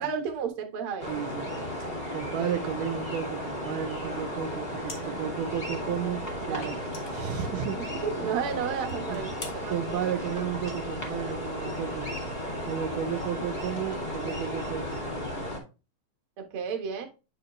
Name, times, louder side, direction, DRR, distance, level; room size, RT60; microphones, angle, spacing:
voice 1, 0.0-1.1 6.5-6.7 8.0-9.8 16.5-17.1, right 6 dB, 60° right, 4 dB, 1.5 m, -32 dB
sound 1, 1.0-15.6, equal, 25° left, 1.4 m, -34 dB
voice 2, 1.1-6.8 7.1-7.9 8.2-8.5 9.1-9.2 9.7-12.2 12.6-15.1, right 9 dB, 75° right, 7 dB, 2.0 m, -33 dB
sound 2, 4.9-5.4 5.7-5.8 6.6-8.0 8.3-8.5 8.9-9.6, left 4 dB, 85° left, 0.8 m, -45 dB
8.6 x 5.0 x 3.1 m, 0.30 s
omnidirectional pair, 4.1 m